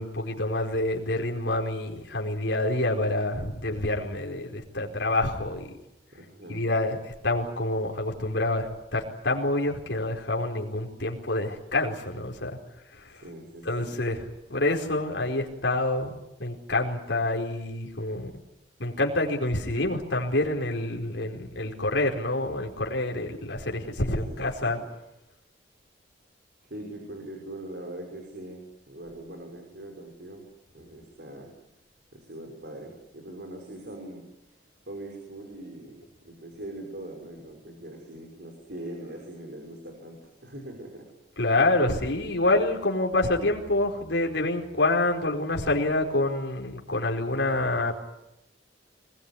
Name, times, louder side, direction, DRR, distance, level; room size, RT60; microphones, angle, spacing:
voice 1, 0.0-5.7 6.5-12.6 12.9-13.2 13.6-14.2 14.5-16.1 16.4-18.3 18.8-24.8 41.4-48.0, left 2 dB, 75° left, 0 dB, 4.5 m, -27 dB
voice 2, 6.1-6.7 13.1-14.0 21.2-21.5 24.3-24.8 26.6-30.5 30.7-31.5 32.1-34.2 34.9-41.1, right 1 dB, 65° right, 2 dB, 5.6 m, -42 dB
24.5 x 21.5 x 10.0 m, 0.92 s
head